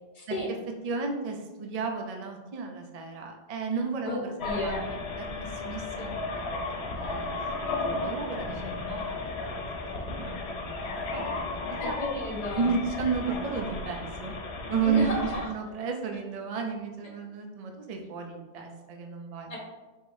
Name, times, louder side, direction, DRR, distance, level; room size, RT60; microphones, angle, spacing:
voice 1, 0.1-0.5 4.0-4.2 4.4-4.8 5.9-6.1 11.8-12.7 14.8-15.5 19.5-19.6, left 1 dB, 40° left, -2 dB, 1.0 m, -32 dB
voice 2, 0.8-6.6 6.9-9.6 10.0-12.0 12.5-14.4 14.7-19.6, right 5 dB, 45° right, 3 dB, 0.6 m, -33 dB
sound 1, 4.4-15.5, left 3 dB, 90° left, 1.0 m, -34 dB
4.9 x 3.7 x 2.6 m, 1.2 s
omnidirectional pair, 1.0 m